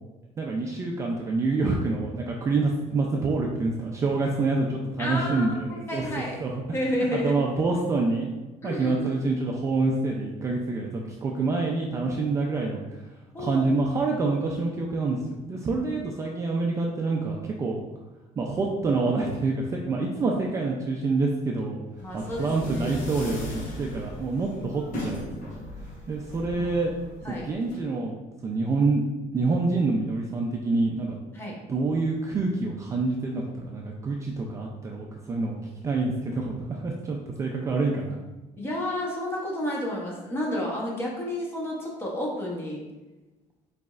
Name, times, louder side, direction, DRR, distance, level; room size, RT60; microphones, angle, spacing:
voice 1, 0.4-6.1 6.4-6.6 7.1-8.3 8.6-12.8 13.4-15.2 15.4-17.8 18.4-21.8 22.1-25.5 26.1-26.9 27.3-28.1 28.4-29.0 29.3-31.2 31.7-35.6 35.8-38.2, right 3 dB, 20° right, -1 dB, 0.3 m, -27 dB
voice 2, 5.0-6.4 6.7-7.3 8.6-9.1 13.3-13.9 22.0-23.1 26.6-26.7 27.2-27.5 31.3-31.5 38.6-42.8, left 1 dB, 15° left, -2 dB, 0.8 m, -31 dB
sound 1, 22.0-27.8, left 1 dB, 65° left, 1.0 m, -38 dB
5.0 x 4.0 x 2.4 m, 1.1 s
cardioid pair, 175°, 13 cm